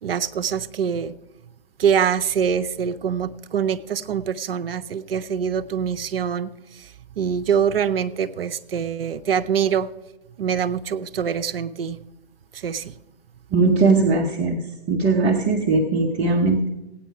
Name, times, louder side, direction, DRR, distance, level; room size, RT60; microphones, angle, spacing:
voice 1, 0.0-1.1 1.8-9.9 10.4-12.0 12.5-12.9, right 7 dB, 60° right, 13 dB, 0.7 m, -24 dB
voice 2, 13.5-14.6 14.9-16.7, right 3 dB, 20° right, 0 dB, 0.9 m, -19 dB
16.5 x 9.2 x 4.7 m, 1.0 s
figure-of-eight pair, 135°, 33 cm